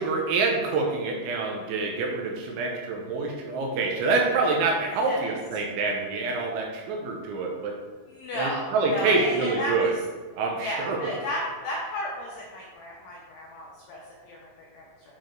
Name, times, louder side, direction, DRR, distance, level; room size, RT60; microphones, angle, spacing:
voice 1, 0.0-7.7 8.4-9.9 10.4-11.0, right 3 dB, 80° right, 0 dB, 2.8 m, -26 dB
voice 2, 4.9-5.3 8.1-10.0 10.6-15.2, left 1 dB, 90° left, -4 dB, 2.3 m, -34 dB
8.5 x 3.1 x 4.4 m, 1.4 s
omnidirectional pair, 5.8 m